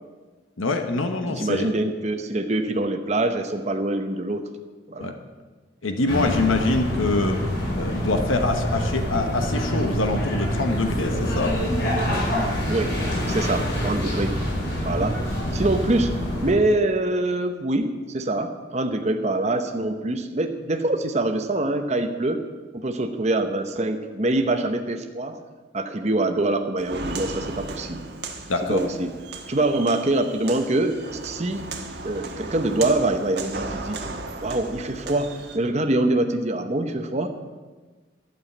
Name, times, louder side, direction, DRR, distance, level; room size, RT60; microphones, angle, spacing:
voice 1, 0.6-1.7 5.0-5.2 5.8-7.4 7.7-11.5 28.5-28.8, left 2 dB, 85° left, 6 dB, 1.1 m, -25 dB
voice 2, 1.3-4.5 4.9-5.1 12.7-13.0 13.3-14.4 14.8-15.2 15.5-16.1 16.4-22.4 22.7-25.4 25.7-28.0 28.7-29.1 29.5-31.7 32.0-34.0 34.4-37.3, right 2 dB, 35° right, 6 dB, 0.8 m, -24 dB
sound 1, 6.1-16.5, equal, 60° left, 5.2 m, -26 dB
Walk footsteps, 26.8-35.6, right 3 dB, 55° right, 1.4 m, -35 dB
12.0 x 7.1 x 9.6 m, 1.3 s
head